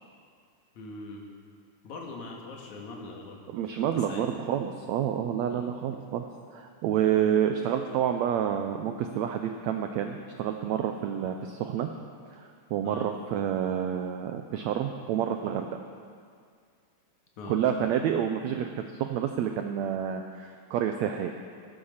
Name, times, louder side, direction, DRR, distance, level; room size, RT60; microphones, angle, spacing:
voice 1, 0.8-1.2 1.8-3.4 3.9-4.2 5.5-5.7 12.8-13.1 17.4-17.6, left 3 dB, 60° left, -1 dB, 3.1 m, -41 dB
voice 2, 3.5-6.2 6.5-11.9 12.3-15.7 17.5-21.3, right 9 dB, 90° right, 5 dB, 1.5 m, -29 dB
14.5 x 13.0 x 5.7 m, 2.2 s
omnidirectional pair, 3.9 m